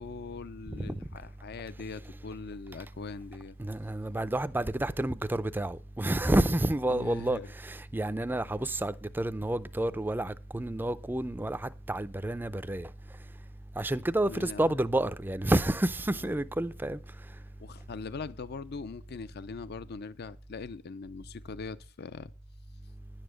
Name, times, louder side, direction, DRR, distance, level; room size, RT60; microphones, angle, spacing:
voice 1, 0.0-3.6 6.9-7.5 14.3-14.8 16.3-16.4 17.6-22.3, left 4 dB, 50° left, 0.5 m, -41 dB
voice 2, 3.6-12.9 13.8-17.0, right 1 dB, 10° right, 0.5 m, -29 dB
10.5 x 9.0 x 6.3 m
head